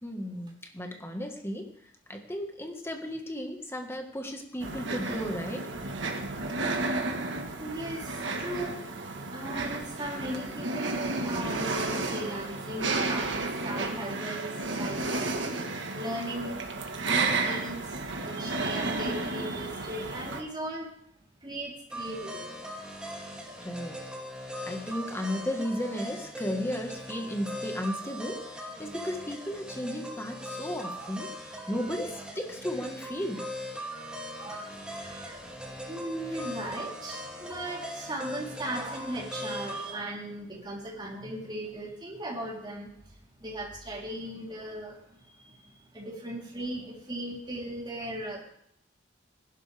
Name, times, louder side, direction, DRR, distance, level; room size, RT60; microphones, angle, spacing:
voice 1, 0.0-1.7 2.1-5.7 23.6-24.0 24.6-33.5, equal, 15° left, 4 dB, 1.6 m, -34 dB
sound 1, 4.6-20.4, right 3 dB, 70° right, 1.6 m, -32 dB
voice 2, 7.6-8.8 9.3-14.5 14.8-15.5 15.9-16.6 17.0-20.9 21.4-22.5 24.8-25.0 30.9-31.1 33.3-33.5 33.9-35.4 35.9-42.9 43.4-45.0 45.9-48.4, right 1 dB, 25° right, -3 dB, 3.8 m, -37 dB
sound 2, 21.9-39.9, equal, 5° right, 2.7 m, -40 dB
19.0 x 11.5 x 3.5 m, 0.71 s
head